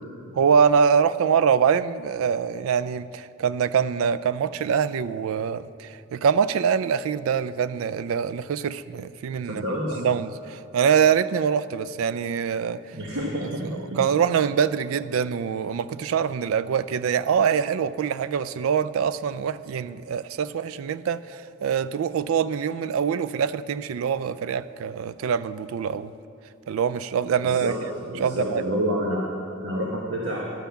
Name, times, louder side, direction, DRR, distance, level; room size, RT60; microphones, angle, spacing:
voice 1, 0.3-9.6 10.0-13.0 13.4-26.1 26.7-27.7 28.2-28.6, right 7 dB, 80° right, 0.3 m, -24 dB
voice 2, 9.4-10.0 12.9-14.0 27.4-27.8 28.1-29.2 29.6-30.4, equal, 60° right, 1.1 m, -28 dB
12.0 x 5.7 x 7.1 m
head